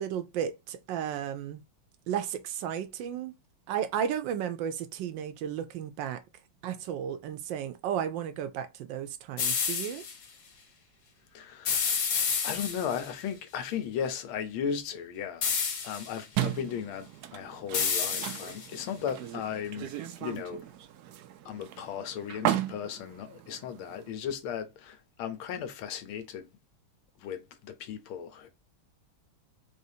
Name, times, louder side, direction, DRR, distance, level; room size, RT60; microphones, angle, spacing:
voice 1, 0.0-1.6 2.1-3.3 3.7-6.2 6.6-10.0, right 9 dB, 75° right, 1.2 m, -33 dB
sound 1, 9.4-10.1 11.6-13.1 15.4-16.2 17.7-18.8, left 6 dB, 60° left, 1.6 m, -29 dB
voice 2, 11.3-12.1 12.4-15.5 15.8-20.7 21.4-26.5 27.2-28.5, left 8 dB, 85° left, 1.6 m, -36 dB
sound 2, 16.4-24.1, right 12 dB, 90° right, 0.8 m, -36 dB
4.2 x 3.4 x 2.7 m
omnidirectional pair, 2.2 m